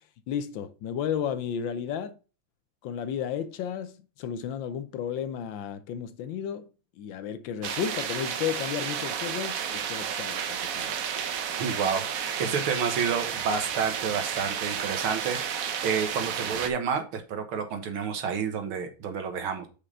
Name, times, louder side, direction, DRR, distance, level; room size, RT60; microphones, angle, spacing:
voice 1, 0.3-2.1 2.8-6.7 7.0-10.9, left 8 dB, 75° left, 1.2 m, -33 dB
sound 1, 7.6-16.7, right 8 dB, 60° right, 0.9 m, -32 dB
voice 2, 11.6-19.7, right 6 dB, 80° right, 2.1 m, -30 dB
5.7 x 5.1 x 5.4 m
omnidirectional pair, 2.3 m